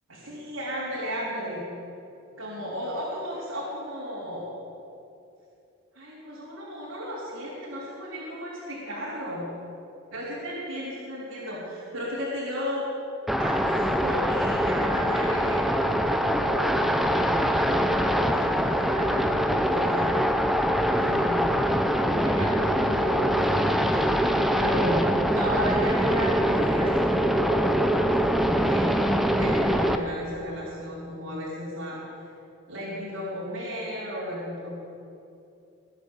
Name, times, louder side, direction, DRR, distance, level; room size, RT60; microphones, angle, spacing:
voice 1, 0.1-1.7 2.4-4.5 5.9-9.4 10.1-12.8 13.4-20.2 20.9-21.4 22.2-24.3 24.5-25.0 25.3-32.0 32.7-34.8, equal, 80° right, -8 dB, 3.9 m, -34 dB
sound 1, 13.3-30.0, equal, ahead, 0.7 m, -23 dB
23.0 x 8.4 x 7.2 m, 2.7 s
head